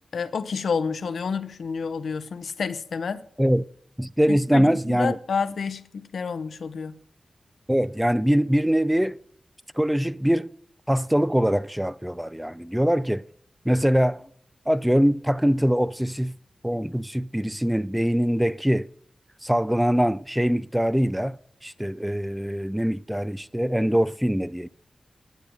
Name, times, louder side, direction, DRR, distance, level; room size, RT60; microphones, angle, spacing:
voice 1, 0.1-3.2 4.3-7.0, left 5 dB, 85° left, 0.7 m, -29 dB
voice 2, 4.0-5.2 7.7-9.2 9.8-10.5 10.9-13.2 13.7-14.3 14.7-16.3 16.6-18.9 19.4-21.4 21.6-24.7, equal, 5° right, 0.4 m, -23 dB
12.0 x 8.6 x 5.1 m
cardioid pair, 60°, 0 cm